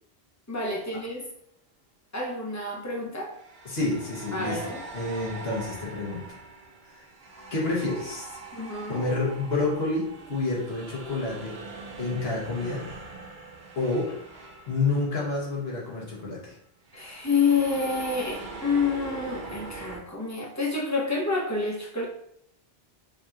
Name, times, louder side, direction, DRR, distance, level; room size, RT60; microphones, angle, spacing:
voice 1, 0.5-1.2 2.1-3.3 4.3-4.8 8.5-9.0 16.9-22.1, left 4 dB, 20° left, -2 dB, 0.7 m, -28 dB
sound 1, 0.6-0.8 3.3-15.7 15.9-16.1 16.9-20.0, right 3 dB, 70° right, 1.0 m, -42 dB
voice 2, 3.6-6.2 6.9-7.0 7.5-8.4 8.9-11.6 12.0-12.8 13.8-14.1 14.7-16.5, left 3 dB, 75° left, -4 dB, 1.4 m, -29 dB
5.2 x 2.8 x 2.4 m, 0.72 s
omnidirectional pair, 1.1 m